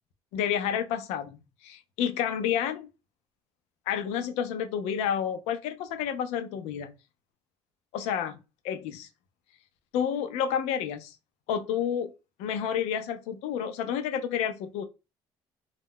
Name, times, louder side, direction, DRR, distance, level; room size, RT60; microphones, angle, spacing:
voice 1, 0.3-2.9 3.9-6.9 7.9-8.4 8.6-9.1 9.9-11.2 11.5-12.1 12.4-14.8, left 8 dB, 85° left, 0.5 m, -30 dB
2.2 x 2.0 x 3.6 m
supercardioid pair, 75°, 11 cm